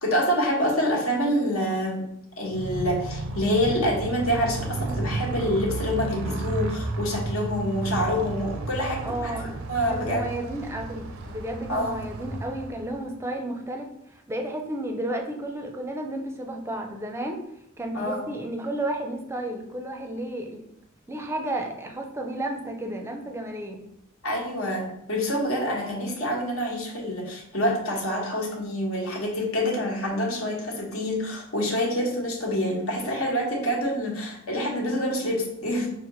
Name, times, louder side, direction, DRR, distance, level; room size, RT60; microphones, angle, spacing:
voice 1, 0.0-2.1 2.4-10.3 11.7-12.1 17.9-18.2 24.2-35.9, equal, 80° left, -1 dB, 1.2 m, -27 dB
Motorcycle, 2.5-13.1, right 2 dB, 70° right, 0.5 m, -33 dB
voice 2, 9.0-9.5 9.9-17.4 17.8-20.6 21.1-23.8, right 1 dB, 10° right, 3 dB, 0.5 m, -32 dB
5.7 x 2.5 x 3.0 m, 0.76 s
head